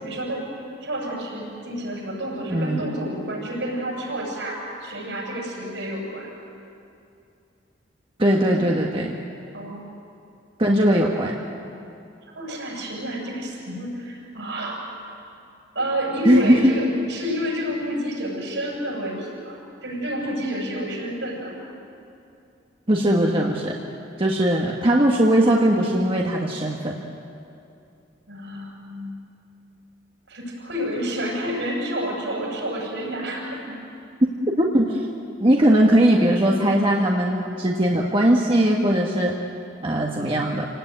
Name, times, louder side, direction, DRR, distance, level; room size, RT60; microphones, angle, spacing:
voice 1, 0.0-0.4 0.8-6.3 8.5-8.7 9.5-9.8 12.2-14.8 15.7-19.6 19.8-21.5 28.3-29.2 30.3-33.8, equal, 70° right, -1 dB, 7.4 m, -29 dB
voice 2, 2.5-2.8 8.2-9.1 10.6-11.3 16.2-16.6 22.9-23.8 24.2-26.9 34.6-35.0 35.4-39.3 39.8-40.7, right 1 dB, 30° right, -1 dB, 1.7 m, -19 dB
28.0 x 18.0 x 9.4 m, 2.6 s
head